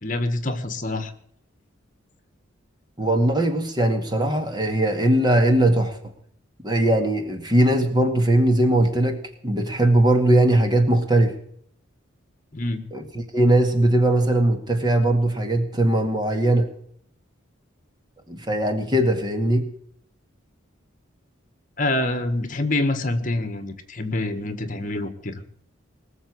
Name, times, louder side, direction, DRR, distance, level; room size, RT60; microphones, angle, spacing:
voice 1, 0.0-1.1 12.5-12.8 21.8-25.3, left 2 dB, 40° left, 10 dB, 1.7 m, -26 dB
voice 2, 3.0-6.0 6.6-11.3 12.9-16.7 18.3-19.7, right 1 dB, 20° right, 6 dB, 2.0 m, -20 dB
20.5 x 7.1 x 9.5 m, 0.64 s
head